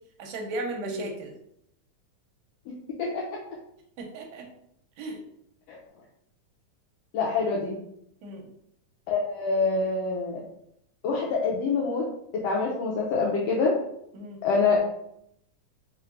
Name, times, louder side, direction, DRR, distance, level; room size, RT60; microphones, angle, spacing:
voice 1, 0.2-1.3 4.0-4.5 5.0-5.2 8.2-8.5 14.1-14.4, right 2 dB, 75° right, 2 dB, 1.7 m, -36 dB
voice 2, 0.8-1.1 3.0-3.2 5.7-5.8 7.1-7.7 9.1-10.4 11.0-12.0 12.4-13.7 14.4-14.8, left 4 dB, 90° left, -4 dB, 1.4 m, -25 dB
4.5 x 3.3 x 2.5 m, 0.75 s
omnidirectional pair, 3.5 m